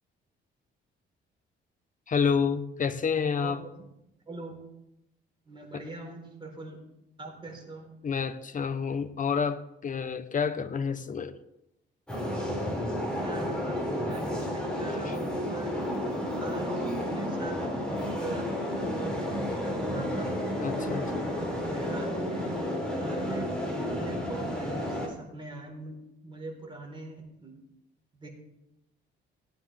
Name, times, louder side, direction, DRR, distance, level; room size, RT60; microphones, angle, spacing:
voice 1, 2.1-3.6 5.7-5.8 8.0-11.4 14.9-15.1 20.6-21.3, left 6 dB, 40° left, 12 dB, 1.0 m, -29 dB
voice 2, 3.4-3.8 4.3-4.6 5.5-6.8 7.2-7.9 13.1-15.8 16.4-17.6 17.9-18.5 18.9-20.4 21.7-22.5 22.9-23.6 23.8-27.6 28.2-28.3, right 2 dB, 25° right, 0 dB, 4.3 m, -41 dB
sound 1, 12.1-25.1, equal, 5° left, 5.7 m, -31 dB
17.5 x 9.7 x 3.5 m, 0.87 s
cardioid pair, 90°, 20 cm